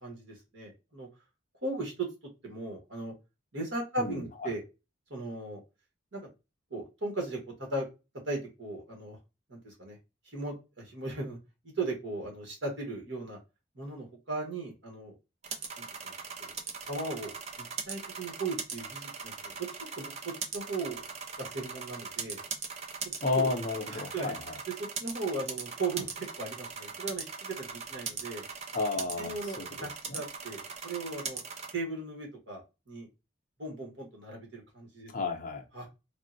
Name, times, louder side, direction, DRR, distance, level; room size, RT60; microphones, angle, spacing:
voice 1, 0.0-1.1 1.6-2.1 2.4-3.1 3.5-4.6 5.1-5.6 6.1-6.3 6.7-7.9 8.3-9.2 9.5-10.0 10.3-11.4 11.8-13.4 13.7-15.1 15.8-16.1 16.4-16.5 16.8-17.3 17.6-19.5 20.0-20.1 20.5-21.1 21.4-22.4 23.3-23.5 23.9-24.3 25.0-28.4 29.2-31.4 31.7-33.1 33.6-35.1 35.7-35.9, right 2 dB, 70° right, 0 dB, 1.2 m, -37 dB
voice 2, 4.0-4.5 23.2-24.6 28.7-29.7 30.1-30.2 35.1-35.6, left 3 dB, 40° left, 3 dB, 0.6 m, -32 dB
sound 1, 15.4-31.7, right 5 dB, 35° right, 0.4 m, -40 dB
3.5 x 2.1 x 2.5 m, 0.27 s
head